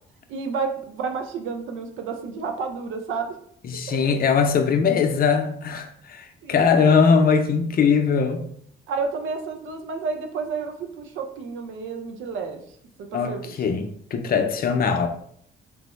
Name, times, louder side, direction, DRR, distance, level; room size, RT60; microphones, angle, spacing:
voice 1, 0.3-3.3 3.9-4.1 6.4-6.8 8.9-12.6 13.0-13.6, right 5 dB, 80° right, 0.5 m, -30 dB
voice 2, 3.6-8.4 13.1-15.1, left 6 dB, 50° left, 0.5 m, -21 dB
3.4 x 2.0 x 3.0 m
cardioid pair, 90°, 20 cm